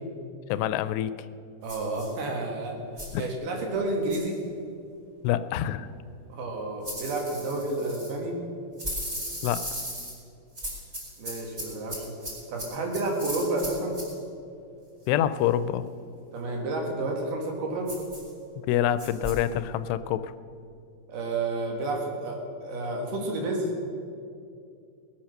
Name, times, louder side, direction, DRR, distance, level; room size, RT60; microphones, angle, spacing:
voice 1, 0.5-1.2 3.1-3.2 5.2-5.9 9.4-9.7 15.1-15.9 18.7-20.3, left 11 dB, 85° left, 14 dB, 2.7 m, -26 dB
voice 2, 1.6-2.8 3.1-4.4 6.3-8.4 11.2-12.1 12.5-14.0 16.3-17.9 21.1-23.7, right 2 dB, 70° right, 1 dB, 3.7 m, -30 dB
sound 1, 1.7-2.1 3.0-3.2 4.1-4.3 6.8-8.1 8.8-10.2 10.5-14.1 17.9-18.3 19.0-19.4, equal, 15° right, 4.2 m, -37 dB
19.5 x 8.9 x 6.5 m, 2.5 s
omnidirectional pair, 4.8 m